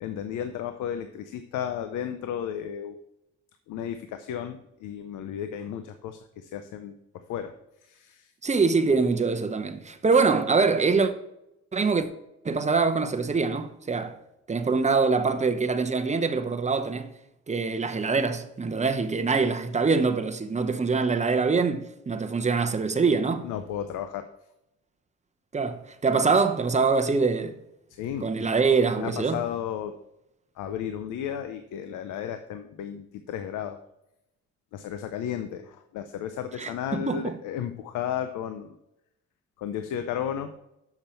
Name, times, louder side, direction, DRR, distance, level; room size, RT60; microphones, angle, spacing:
voice 1, 0.0-3.0 3.7-7.5 7.8-8.3 23.4-24.3 28.0-28.5 29.0-29.9 30.6-33.8 34.7-38.8 39.6-40.5, left 9 dB, 85° left, 0.6 m, -33 dB
voice 2, 8.4-11.1 11.7-12.1 12.4-14.2 14.5-17.1 17.5-23.5 25.5-27.6 28.2-29.4 36.6-37.4, right 4 dB, 25° right, 0.8 m, -24 dB
6.7 x 5.9 x 4.4 m
cardioid pair, 90°, 30 cm